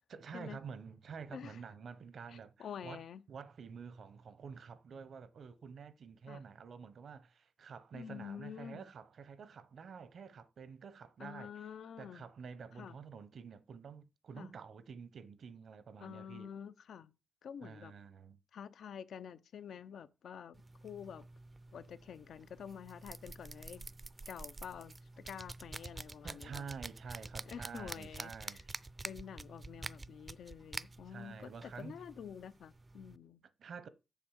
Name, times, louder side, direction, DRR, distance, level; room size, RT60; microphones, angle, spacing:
voice 1, 0.1-3.0 3.3-11.5 12.0-16.5 17.6-18.4 26.2-28.8 31.1-32.0 33.6-33.9, right 6 dB, 65° right, 0.8 m, -49 dB
voice 2, 1.3-1.6 2.3-3.2 6.3-6.4 7.9-8.8 11.2-12.2 12.7-13.0 14.4-14.5 16.0-17.1 17.4-17.9 18.5-21.3 21.7-23.9 24.3-26.8 27.4-28.6 29.0-33.4, left 8 dB, 85° left, 0.6 m, -48 dB
sound 1, 20.5-33.2, right 3 dB, 25° right, 0.4 m, -48 dB
7.2 x 5.2 x 7.3 m
wide cardioid pair, 115°, 0 cm